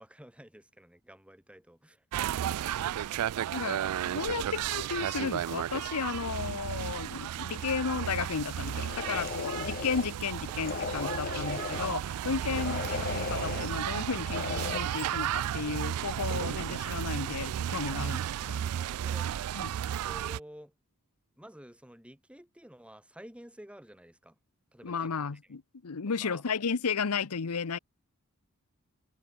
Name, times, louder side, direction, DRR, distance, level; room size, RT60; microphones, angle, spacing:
voice 1, 0.0-2.0 4.3-4.4 12.5-12.6 17.9-18.1 18.4-19.3 20.0-20.7 21.4-24.3 24.7-25.1 26.2-26.4, equal, 5° right, 3.0 m, -51 dB
sound 1, 2.1-20.4, right 10 dB, 85° right, 0.3 m, -33 dB
voice 2, 3.5-12.8 13.1-18.2 18.5-18.6 19.5-19.7 24.8-27.8, left 5 dB, 85° left, 0.8 m, -34 dB
sound 2, 6.6-7.3 7.6-12.8, right 3 dB, 30° right, 2.0 m, -59 dB
sound 3, 8.6-10.1 10.6-12.0 12.5-13.7 14.2-14.8, left 5 dB, 40° left, 0.6 m, -36 dB
head